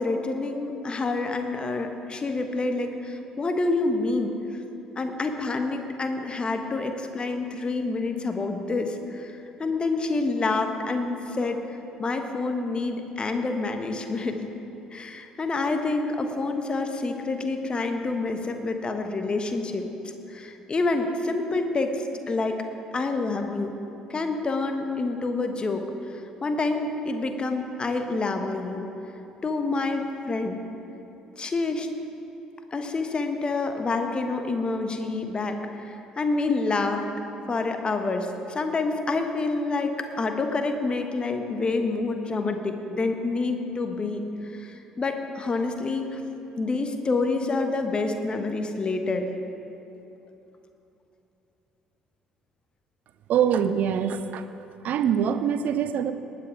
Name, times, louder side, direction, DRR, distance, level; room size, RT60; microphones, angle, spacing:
voice 1, 0.0-4.3 5.0-14.4 14.9-19.9 20.3-22.6 22.9-23.7 24.1-28.9 29.4-30.6 31.3-31.9 32.7-37.0 37.5-46.2 46.6-49.3, left 3 dB, 30° left, 6 dB, 1.2 m, -28 dB
voice 2, 53.3-54.4 54.8-56.1, right 8 dB, 50° right, 11 dB, 0.6 m, -24 dB
19.5 x 8.1 x 4.7 m, 3.0 s
figure-of-eight pair, 50°, 3 cm